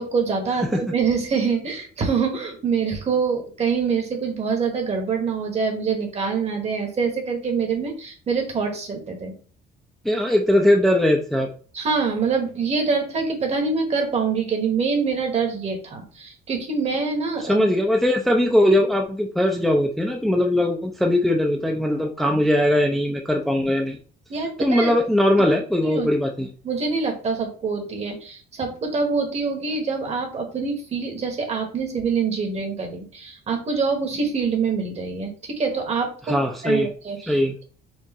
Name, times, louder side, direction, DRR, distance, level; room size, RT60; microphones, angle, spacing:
voice 1, 0.0-9.3 11.7-17.6 24.3-24.9 25.8-26.1 26.6-36.3 36.6-37.4, right 5 dB, 40° right, 4 dB, 1.2 m, -25 dB
voice 2, 10.0-11.5 17.4-24.0 24.6-26.5 36.3-36.9 37.3-37.6, left 1 dB, ahead, 1 dB, 0.5 m, -20 dB
4.5 x 2.5 x 3.0 m, 0.41 s
cardioid pair, 110°, 17 cm